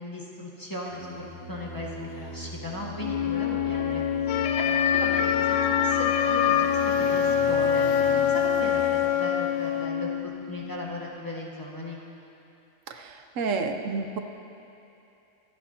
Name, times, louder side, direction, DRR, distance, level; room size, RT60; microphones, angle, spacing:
voice 1, 0.0-4.6 4.9-7.9 8.2-12.0, left 1 dB, 15° left, -4 dB, 1.6 m, -37 dB
Singing, 0.9-8.8, right 1 dB, 35° right, 2.9 m, -40 dB
Wind instrument woodwind instrument, 3.0-11.0, left 8 dB, 55° left, 0.5 m, -26 dB
sound 1, 4.3-9.2 9.5-9.6, left 8 dB, 75° left, 0.9 m, -28 dB
voice 2, 12.9-14.2, right 4 dB, 75° right, 5 dB, 1.1 m, -30 dB
26.5 x 10.5 x 2.9 m, 2.8 s
omnidirectional pair, 1.4 m